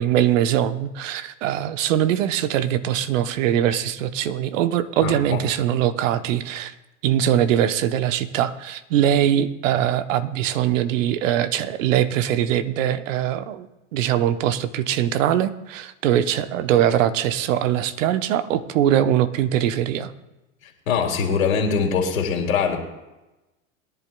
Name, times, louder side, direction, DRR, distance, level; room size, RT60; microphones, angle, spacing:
voice 1, 0.0-6.7 7.0-13.7 13.9-20.1, right 11 dB, 70° right, 12 dB, 1.0 m, -22 dB
voice 2, 5.0-5.4 20.6-22.8, left 6 dB, 85° left, 2 dB, 2.6 m, -23 dB
21.5 x 10.5 x 2.3 m, 1.0 s
hypercardioid pair, 100°, 40 cm